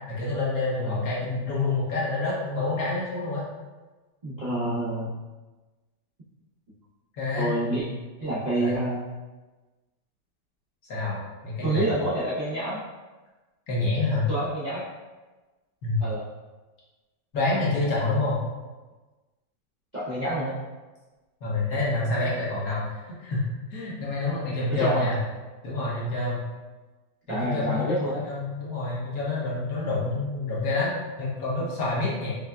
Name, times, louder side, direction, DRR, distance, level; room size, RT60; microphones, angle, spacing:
voice 1, 0.1-3.5 7.1-7.6 8.5-8.8 10.9-11.9 13.7-14.3 15.8-16.0 17.3-18.4 21.4-23.4 23.7-25.2 25.6-26.4 27.3-32.3, left 2 dB, 60° left, -6 dB, 1.2 m, -27 dB
voice 2, 4.2-5.1 7.4-7.8 8.2-9.0 11.6-12.8 14.3-14.8 16.0-16.2 19.9-20.5 24.7-25.1 27.3-28.2, right 1 dB, 50° right, -11 dB, 0.5 m, -28 dB
5.3 x 2.2 x 2.3 m, 1.2 s
omnidirectional pair, 1.9 m